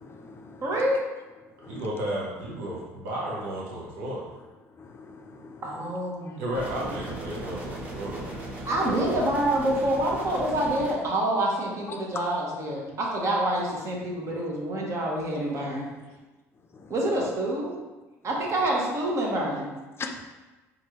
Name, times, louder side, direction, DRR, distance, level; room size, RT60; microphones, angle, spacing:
voice 1, 0.0-0.6 1.6-1.8 4.8-5.6 11.9-12.0 20.0-20.2, left 4 dB, 35° left, 5 dB, 0.5 m, -40 dB
voice 2, 0.6-1.0 5.6-6.4 6.8-6.9 8.6-15.9 16.9-17.8 18.2-19.7, right 1 dB, 45° right, -1 dB, 1.1 m, -27 dB
voice 3, 1.6-4.3 6.4-8.4 8.8-9.2, right 1 dB, 85° right, -4 dB, 0.8 m, -33 dB
sound 1, 6.5-10.9, right 1 dB, 20° right, 1.2 m, -38 dB
4.4 x 2.6 x 3.0 m, 1.2 s
hypercardioid pair, 70°, 7 cm